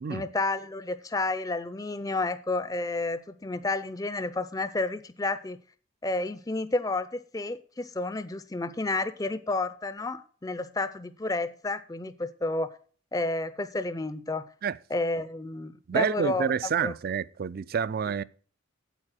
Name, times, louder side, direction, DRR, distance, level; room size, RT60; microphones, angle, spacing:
voice 1, 0.1-5.6 6.0-12.7 13.1-14.5 14.9-16.5 16.8-16.9, left 2 dB, 15° left, 0.5 m, -31 dB
voice 2, 15.9-18.2, right 6 dB, 45° right, 0.4 m, -28 dB
8.9 x 8.2 x 6.0 m
head